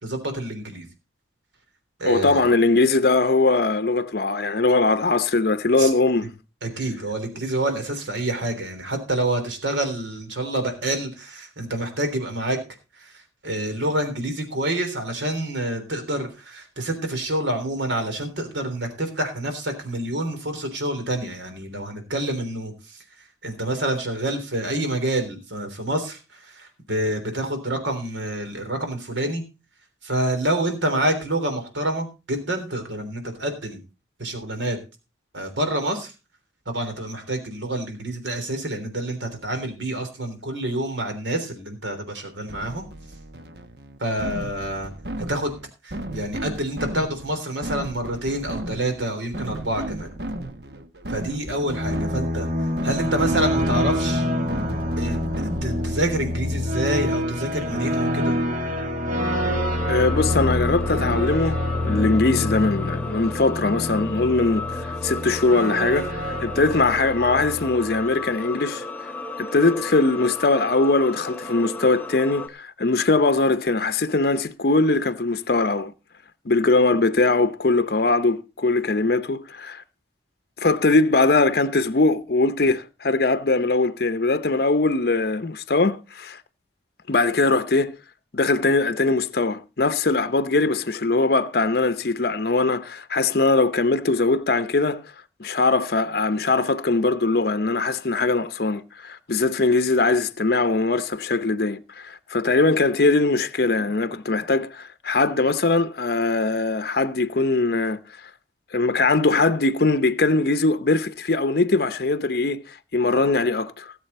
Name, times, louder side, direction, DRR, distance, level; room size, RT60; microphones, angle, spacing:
voice 1, 0.0-0.9 2.0-2.4 5.8-5.9 6.6-12.6 13.0-23.0 23.4-29.4 30.0-33.8 34.2-34.8 35.3-36.1 36.6-42.9 44.0-44.9 45.3-45.5 45.8-50.1 51.1-54.3 55.0-58.4, right 1 dB, 85° right, 3.4 m, -27 dB
voice 2, 2.0-6.3 59.9-68.8 69.4-75.9 76.5-79.8 80.6-86.4 87.1-88.0 88.3-95.0 95.4-108.0 108.7-113.9, left 3 dB, 55° left, 0.7 m, -21 dB
sound 1, 42.5-56.0, right 1 dB, 60° right, 1.1 m, -35 dB
sound 2, 51.4-68.1, left 1 dB, 45° right, 2.1 m, -26 dB
sound 3, 59.2-72.5, left 2 dB, 10° left, 0.8 m, -34 dB
18.0 x 7.5 x 4.2 m
head